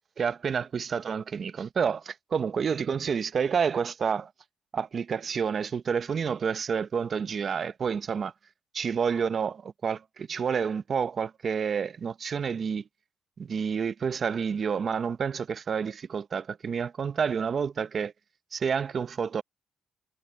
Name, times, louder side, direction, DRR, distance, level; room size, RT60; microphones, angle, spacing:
voice 1, 0.2-4.3 4.7-8.3 8.7-12.8 13.4-18.1 18.5-19.4, right 6 dB, 45° right, 0.8 m, -29 dB
cardioid pair, 90°, 0 cm